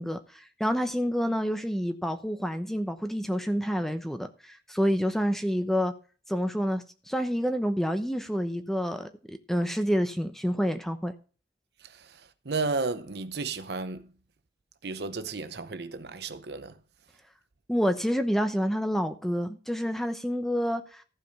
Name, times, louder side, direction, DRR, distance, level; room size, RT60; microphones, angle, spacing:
voice 1, 0.0-5.9 6.3-11.1 17.7-21.0, equal, ahead, 0.9 m, -28 dB
voice 2, 11.8-14.1 14.8-16.8, right 3 dB, 65° right, 0.8 m, -33 dB
15.0 x 5.1 x 5.4 m
head